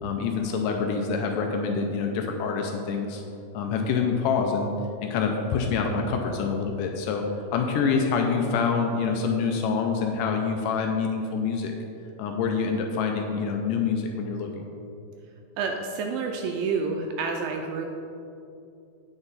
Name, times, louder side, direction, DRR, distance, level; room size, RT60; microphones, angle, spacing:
voice 1, 0.0-3.2 3.5-4.7 5.0-7.2 7.5-11.7 12.2-14.6, left 5 dB, 85° left, 3 dB, 1.9 m, -26 dB
voice 2, 15.6-17.9, right 4 dB, 80° right, 3 dB, 2.1 m, -29 dB
9.0 x 5.8 x 4.0 m, 2.7 s
omnidirectional pair, 4.3 m